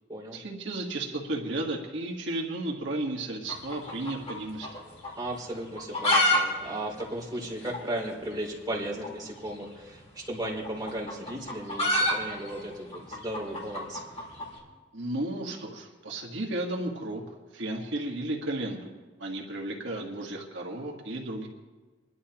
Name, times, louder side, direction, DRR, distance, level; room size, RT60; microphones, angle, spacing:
voice 1, 0.3-4.7 14.9-17.2 17.5-21.5, right 2 dB, 70° right, -1 dB, 1.5 m, -33 dB
sound 1, 3.4-4.8 5.0-5.1 5.7-6.4 6.7-6.8 7.0-7.1 7.7-7.8 9.0-9.2 10.3-14.5, left 1 dB, 35° left, 3.8 m, -27 dB
voice 2, 5.2-14.0, right 1 dB, 20° right, -3 dB, 2.9 m, -35 dB
30.0 x 11.0 x 2.9 m, 1.4 s
head